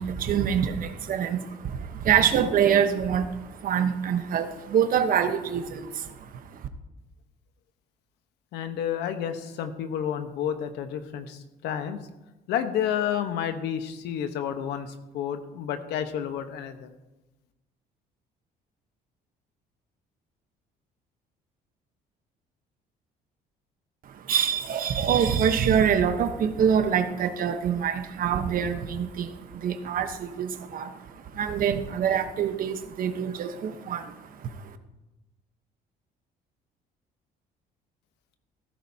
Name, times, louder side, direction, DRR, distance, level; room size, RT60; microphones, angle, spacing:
voice 1, 0.0-6.7 24.0-34.8, right 8 dB, 55° right, 9 dB, 1.1 m, -26 dB
voice 2, 8.5-12.1 12.5-16.9, left 9 dB, 85° left, 8 dB, 1.2 m, -30 dB
15.0 x 13.5 x 2.8 m, 1.0 s
cardioid pair, 110°, 17 cm